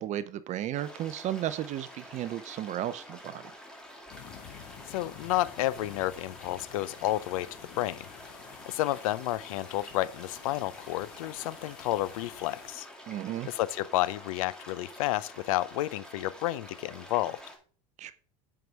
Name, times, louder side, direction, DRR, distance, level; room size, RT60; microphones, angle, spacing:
voice 1, 0.0-3.4 13.1-13.5 18.0-18.1, right 12 dB, 40° right, 0.5 m, -34 dB
sound 1, 0.8-17.6, equal, 5° left, 2.2 m, -48 dB
sound 2, 4.1-12.8, left 11 dB, 55° left, 0.9 m, -50 dB
voice 2, 4.9-7.5 7.8-8.1 8.7-12.9 13.5-17.4, left 16 dB, 75° left, 0.5 m, -31 dB
7.8 x 4.8 x 4.6 m
hypercardioid pair, 90°, 18 cm